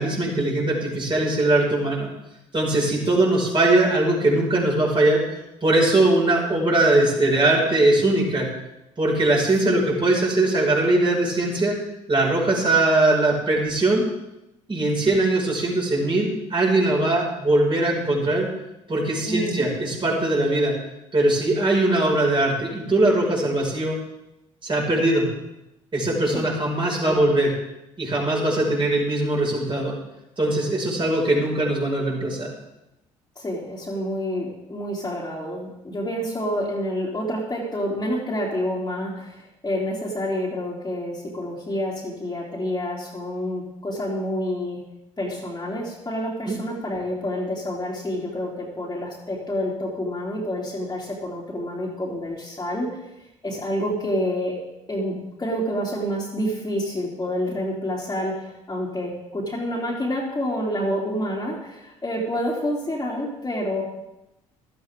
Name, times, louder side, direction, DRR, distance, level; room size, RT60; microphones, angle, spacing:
voice 1, 0.0-2.1 2.5-5.2 5.6-8.5 9.0-11.8 12.1-14.0 14.7-18.5 18.9-20.8 21.1-24.0 24.6-25.3 25.9-27.5 28.0-29.9 30.4-32.5 46.5-46.6, right 2 dB, 30° right, -3 dB, 5.7 m, -21 dB
voice 2, 19.3-19.7 26.3-26.4 27.1-27.2 33.3-44.8 45.2-53.0 53.4-54.6 54.9-63.8, equal, 20° left, -6 dB, 3.3 m, -28 dB
15.5 x 12.5 x 3.7 m, 0.90 s
hypercardioid pair, 55°, 17 cm